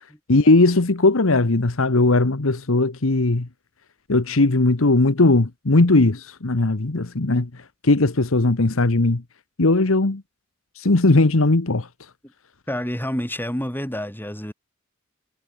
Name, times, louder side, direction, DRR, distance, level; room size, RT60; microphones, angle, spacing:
voice 1, 0.3-3.5 4.1-7.5 7.8-9.2 9.6-10.2 10.8-11.9, left 2 dB, 75° left, 1.2 m, -18 dB
voice 2, 12.7-14.5, equal, 10° left, 7.9 m, -28 dB
head